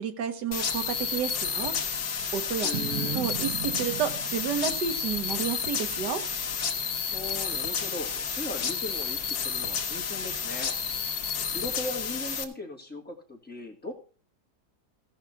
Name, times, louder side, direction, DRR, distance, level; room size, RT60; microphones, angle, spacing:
voice 1, 0.0-1.8 2.3-2.7 3.0-6.2, right 8 dB, 80° right, 9 dB, 1.7 m, -31 dB
sound 1, 0.5-12.4, left 6 dB, 70° left, 1.8 m, -31 dB
voice 2, 2.6-3.2 7.1-13.9, left 2 dB, 5° left, -1 dB, 2.2 m, -39 dB
Boom, 2.7-6.1, right 11 dB, 65° right, 1.3 m, -37 dB
16.0 x 5.8 x 5.8 m, 0.37 s
omnidirectional pair, 1.8 m